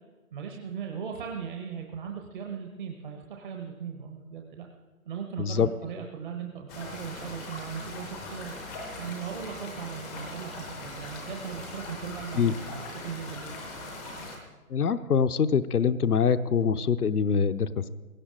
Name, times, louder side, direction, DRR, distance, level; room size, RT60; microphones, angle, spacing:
voice 1, 0.3-4.7 5.0-8.5 9.0-13.5, right 7 dB, 35° right, 2 dB, 1.1 m, -38 dB
voice 2, 5.4-5.7 12.4-12.5 14.7-17.9, left 6 dB, 85° left, 11 dB, 0.8 m, -24 dB
sound 1, 6.7-14.4, left 2 dB, ahead, 0.6 m, -40 dB
19.0 x 17.0 x 3.8 m, 1.3 s
figure-of-eight pair, 145°, 44 cm